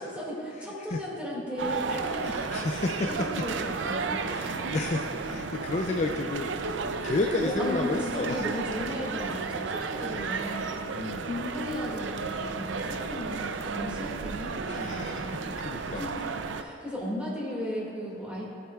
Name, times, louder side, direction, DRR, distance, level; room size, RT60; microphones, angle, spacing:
voice 1, 0.0-2.4 2.6-4.3 4.9-5.1 7.4-10.7 11.2-15.4 15.9-16.1 16.5-18.5, left 1 dB, 5° right, -5 dB, 1.9 m, -35 dB
sound 1, 1.6-16.6, right 4 dB, 80° right, 0.5 m, -33 dB
voice 2, 2.2-3.4 4.3-8.4 10.9-11.3 14.7-15.3 15.7-16.2, left 3 dB, 35° left, 2 dB, 0.3 m, -31 dB
17.0 x 8.4 x 2.3 m, 2.4 s
head